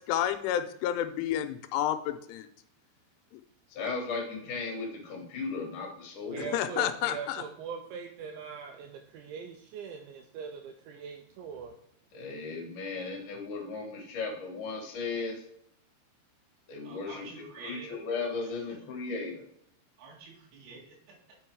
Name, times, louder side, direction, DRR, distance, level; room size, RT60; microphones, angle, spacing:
voice 1, 0.1-2.5 6.4-7.4, left 11 dB, 85° left, 9 dB, 3.0 m, -30 dB
voice 2, 3.7-6.6 12.1-15.4 16.7-19.4, left 4 dB, 60° left, 0 dB, 2.2 m, -36 dB
voice 3, 6.3-11.8, right 6 dB, 85° right, 4 dB, 2.7 m, -41 dB
voice 4, 16.8-17.9 18.4-18.6 20.0-21.2, right 4 dB, 65° right, -3 dB, 4.1 m, -48 dB
8.4 x 5.4 x 4.5 m, 0.70 s
omnidirectional pair, 5.6 m